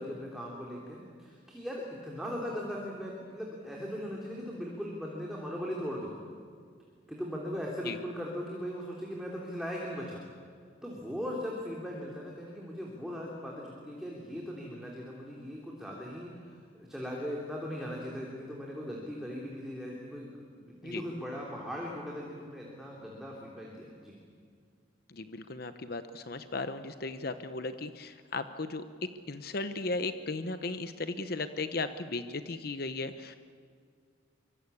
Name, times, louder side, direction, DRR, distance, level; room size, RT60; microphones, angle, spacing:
voice 1, 0.0-6.1 7.1-10.2 10.8-24.1, equal, ahead, -3 dB, 3.3 m, -39 dB
voice 2, 25.1-28.8 29.3-33.4, left 3 dB, 50° left, 10 dB, 0.9 m, -36 dB
24.5 x 24.0 x 8.5 m, 2.1 s
head